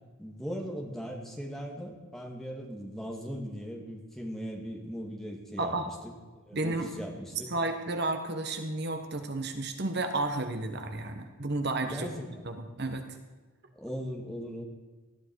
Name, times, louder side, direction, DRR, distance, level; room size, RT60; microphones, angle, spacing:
voice 1, 0.2-6.1 6.5-7.5 11.9-12.5 13.7-14.6, equal, ahead, 0 dB, 2.2 m, -39 dB
voice 2, 6.5-6.9 7.5-12.1 12.4-13.1, right 2 dB, 50° right, 6 dB, 1.4 m, -32 dB
19.5 x 13.5 x 4.7 m, 1.3 s
head